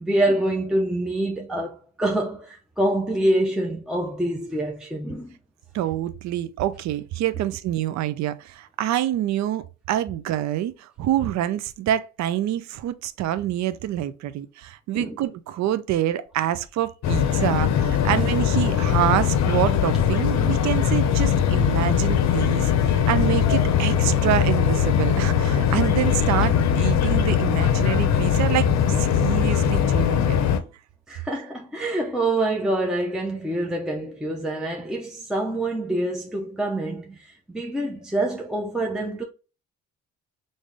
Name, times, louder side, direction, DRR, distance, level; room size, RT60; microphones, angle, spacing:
voice 1, 0.0-5.4 14.9-15.2 18.0-18.2 31.1-39.2, right 1 dB, ahead, 0.6 m, -26 dB
voice 2, 5.7-28.7 29.0-30.4, right 12 dB, 65° right, 0.4 m, -26 dB
sound 1, 17.0-30.6, left 8 dB, 60° left, 0.6 m, -21 dB
3.6 x 2.6 x 3.2 m
cardioid pair, 90°, 30 cm